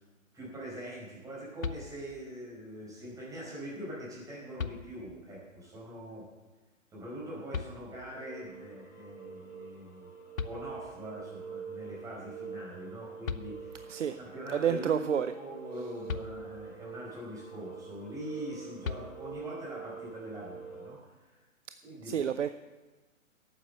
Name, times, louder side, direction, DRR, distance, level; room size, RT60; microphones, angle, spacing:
voice 1, 0.3-6.2 6.9-10.1 10.4-13.8 14.2-21.4 21.8-22.3, equal, 10° right, -6 dB, 5.0 m, -43 dB
sound 1, 1.6-2.4 3.9-4.0 4.6-5.3 7.5-8.3 10.0-10.1 10.4-11.2 12.9-13.0 13.2-14.0 16.1-16.9 18.8-19.6, left 6 dB, 75° left, 0.8 m, -40 dB
sound 2, 8.0-20.9, right 6 dB, 60° left, 5.2 m, -45 dB
voice 2, 14.5-15.3 22.0-22.5, right 8 dB, 65° right, 11 dB, 0.6 m, -29 dB
12.5 x 9.0 x 6.8 m, 1.2 s
figure-of-eight pair, 130°, 40 cm